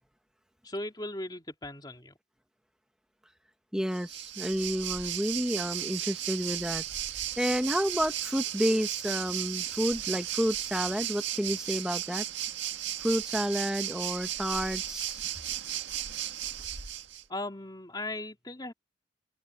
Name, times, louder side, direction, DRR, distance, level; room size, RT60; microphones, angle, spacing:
voice 1, 0.6-2.1 17.3-18.7, left 1 dB, 20° left, 3.5 m, -37 dB
voice 2, 3.7-6.8 7.4-12.2 13.0-15.2, equal, 5° right, 1.4 m, -30 dB
Waves surf, 3.9-17.2, right 11 dB, 85° right, 1.8 m, -35 dB
open air
head